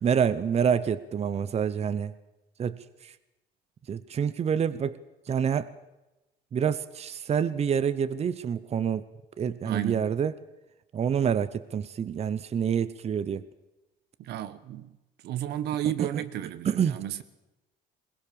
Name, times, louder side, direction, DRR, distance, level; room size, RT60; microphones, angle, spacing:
voice 1, 0.0-2.1 2.6-3.1 3.9-5.0 5.3-5.7 6.5-9.1 9.4-10.3 10.9-13.5 16.0-16.2 16.6-17.0, right 7 dB, 40° right, 0.9 m, -27 dB
voice 2, 9.6-10.1 14.2-15.0 15.2-17.2, right 11 dB, 75° right, 1.2 m, -32 dB
21.5 x 19.0 x 7.0 m
cardioid pair, 110°, 17 cm